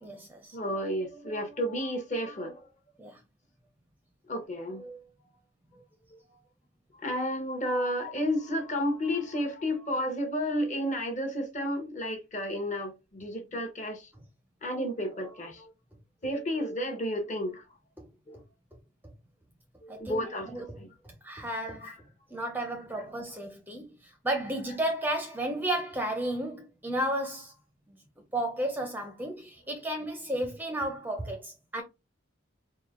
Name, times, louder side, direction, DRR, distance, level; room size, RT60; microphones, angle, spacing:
voice 1, 0.0-0.6 3.0-3.2 19.9-20.8 21.2-21.9 22.3-27.5 28.3-31.8, right 1 dB, 10° right, 0.5 m, -33 dB
voice 2, 0.5-2.7 4.3-5.1 6.1-6.2 7.0-14.1 14.6-15.7 16.2-17.6 18.3-18.4 19.8-20.9 21.8-21.9, equal, 35° left, 1.0 m, -32 dB
4.2 x 2.1 x 3.6 m
head